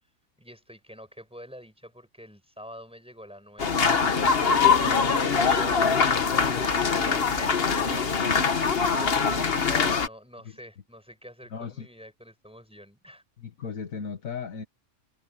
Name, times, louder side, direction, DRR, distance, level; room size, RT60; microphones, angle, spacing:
voice 1, 0.4-3.8 9.7-13.2, equal, 5° right, 5.5 m, -46 dB
sound 1, 3.6-10.1, left 5 dB, 45° left, 1.4 m, -23 dB
voice 2, 11.5-11.9 13.4-14.6, left 6 dB, 65° left, 2.1 m, -36 dB
omnidirectional pair, 1.5 m